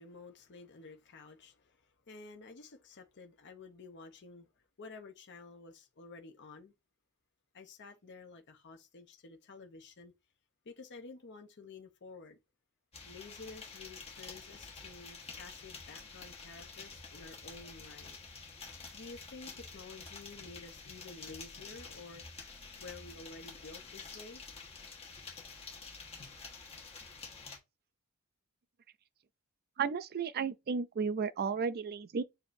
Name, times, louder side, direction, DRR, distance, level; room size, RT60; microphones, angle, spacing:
voice 1, 0.0-4.5 4.8-6.7 7.5-10.1 10.6-12.4 13.0-18.3 18.9-22.2 22.8-24.4, left 3 dB, 55° left, 0.7 m, -51 dB
sound 1, 12.9-27.6, left 4 dB, 30° left, 1.3 m, -49 dB
voice 2, 29.8-32.2, right 5 dB, 45° right, 0.4 m, -33 dB
6.9 x 2.7 x 2.6 m
head